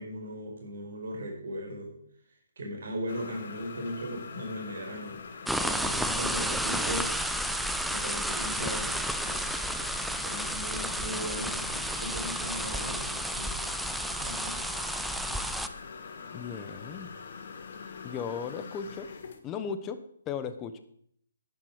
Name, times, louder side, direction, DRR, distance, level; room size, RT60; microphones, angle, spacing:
voice 1, 0.0-1.9 2.6-5.2 5.5-7.1 7.9-9.7 10.2-13.0 13.3-13.6 14.2-14.6, equal, 65° right, 1 dB, 5.0 m, -38 dB
sound 1, 3.1-19.4, left 5 dB, 55° left, 1.7 m, -44 dB
sound 2, 5.5-15.7, right 1 dB, ahead, 0.6 m, -32 dB
voice 2, 5.8-6.9 16.3-17.1 18.0-19.1 19.4-20.8, left 7 dB, 20° left, 10 dB, 1.0 m, -37 dB
10.5 x 10.5 x 5.0 m, 0.67 s
hypercardioid pair, 145°, 0 cm